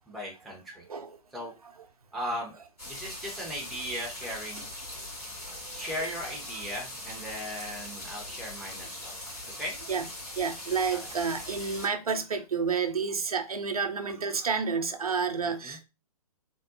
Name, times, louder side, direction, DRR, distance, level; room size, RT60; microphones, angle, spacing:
voice 1, 0.1-0.8 1.3-1.6 2.1-2.5 2.9-4.7 5.7-9.2 9.6-9.8 10.9-11.1 15.4-15.8, equal, ahead, 0.4 m, -37 dB
sound 1, 2.8-11.9, left 1 dB, 85° left, 1.8 m, -41 dB
voice 2, 5.5-5.8 9.9-10.1 10.4-15.8, right 5 dB, 75° right, 0.5 m, -30 dB
3.4 x 2.0 x 2.6 m
figure-of-eight pair, 120°, 19 cm